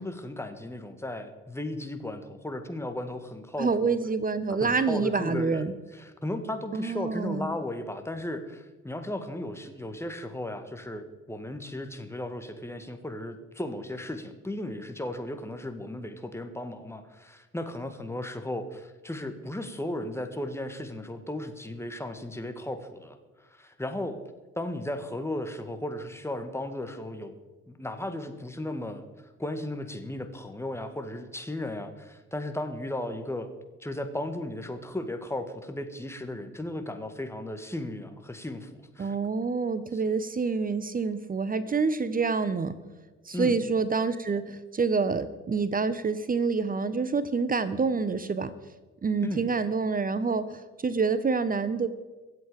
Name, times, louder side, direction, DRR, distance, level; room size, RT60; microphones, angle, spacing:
voice 1, 0.0-3.9 4.5-5.6 5.9-24.2 24.6-27.3 27.7-29.0 29.4-33.5 33.8-39.2 39.9-40.0 43.3-43.6 49.2-49.5, left 1 dB, 5° left, 7 dB, 1.8 m, -35 dB
voice 2, 3.6-5.7 6.7-7.5 39.0-42.8 43.3-48.5 49.0-51.9, right 4 dB, 25° right, 14 dB, 0.9 m, -27 dB
23.0 x 8.1 x 5.0 m, 1.2 s
figure-of-eight pair, 55°, 37 cm